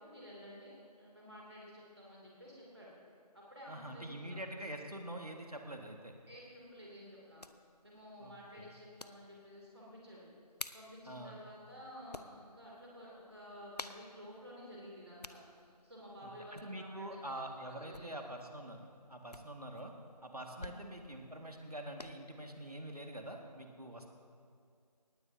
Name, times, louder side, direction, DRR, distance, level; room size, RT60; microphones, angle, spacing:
voice 1, 0.0-2.9 3.3-4.4 6.3-7.5 7.8-10.3 10.7-18.1 20.6-20.8, equal, 40° right, -5 dB, 2.8 m, -52 dB
voice 2, 3.7-6.1 8.2-8.7 11.1-11.4 16.2-19.9 20.2-24.1, right 1 dB, 65° right, 2 dB, 2.0 m, -45 dB
sound 1, 5.4-22.1, left 2 dB, 70° left, 0.7 m, -54 dB
19.0 x 16.0 x 2.8 m, 2.4 s
figure-of-eight pair, 175°, 21 cm